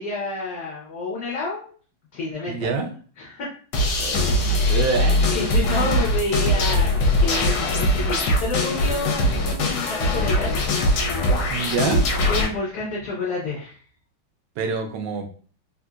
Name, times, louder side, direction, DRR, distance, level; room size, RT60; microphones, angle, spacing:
voice 1, 0.0-1.7 2.1-2.7 3.2-3.5 4.4-10.7 12.2-13.8, left 2 dB, 60° left, -5 dB, 1.1 m, -29 dB
voice 2, 2.5-2.9 4.0-4.4 4.7-5.2 11.5-12.0 14.6-15.3, right 4 dB, 75° right, 3 dB, 1.2 m, -26 dB
sound 1, 3.7-12.5, left 1 dB, 75° left, 1.4 m, -21 dB
3.8 x 2.6 x 2.3 m, 0.42 s
omnidirectional pair, 2.3 m